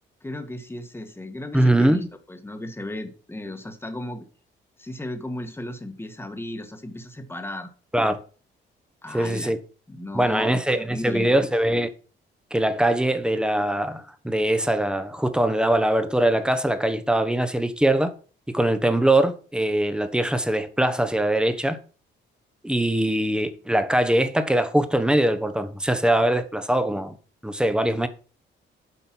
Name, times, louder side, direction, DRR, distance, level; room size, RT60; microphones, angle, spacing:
voice 1, 0.2-4.3 4.8-7.7 9.0-9.5 9.9-11.3, left 1 dB, 10° left, 1.6 m, -35 dB
voice 2, 1.5-2.1 7.9-8.2 9.1-9.6 10.1-11.9 12.5-18.1 18.5-21.8 22.6-27.2 27.4-28.1, right 1 dB, 5° right, 1.2 m, -22 dB
8.4 x 5.3 x 6.1 m
cardioid pair, 90°, 20 cm